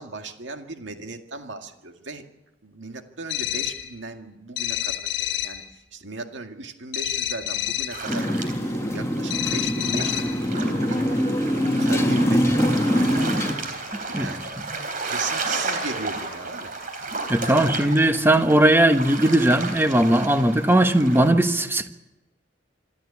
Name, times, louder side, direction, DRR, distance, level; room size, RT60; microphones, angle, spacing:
voice 1, 0.0-2.2 2.6-5.6 5.9-13.1 14.2-14.5 15.0-16.7 17.4-17.7, right 3 dB, 75° right, 5 dB, 2.0 m, -37 dB
sound 1, 3.3-3.9 4.6-5.6 6.9-8.0 9.3-10.4, left 11 dB, 65° left, 1.3 m, -28 dB
sound 2, 7.9-21.3, right 3 dB, 50° right, 3.6 m, -33 dB
Motorcycle, 8.1-13.5, equal, 15° left, 1.5 m, -23 dB
voice 2, 13.9-14.3 17.3-21.9, right 1 dB, 10° right, 8 dB, 1.2 m, -19 dB
26.5 x 13.0 x 8.4 m, 0.95 s
head